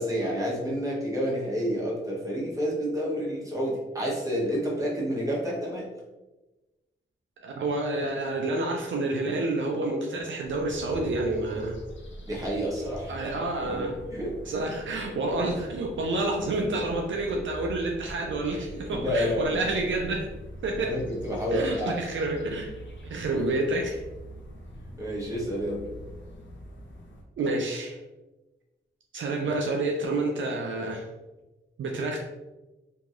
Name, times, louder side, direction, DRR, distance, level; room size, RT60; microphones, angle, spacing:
voice 1, 0.0-5.8 12.3-13.1 13.7-14.5 18.5-19.4 20.8-22.0 25.0-25.8, equal, 15° right, -5 dB, 1.1 m, -29 dB
voice 2, 7.4-11.8 13.1-14.0 14.5-20.3 20.6-20.9 21.5-22.7 23.0-24.0 27.4-28.0 29.1-31.1 31.8-32.2, right 2 dB, 65° right, 1 dB, 0.4 m, -29 dB
sound 1, 10.4-27.2, equal, 65° left, 0.6 m, -44 dB
2.9 x 2.7 x 2.4 m, 1.1 s
cardioid pair, 65°, 21 cm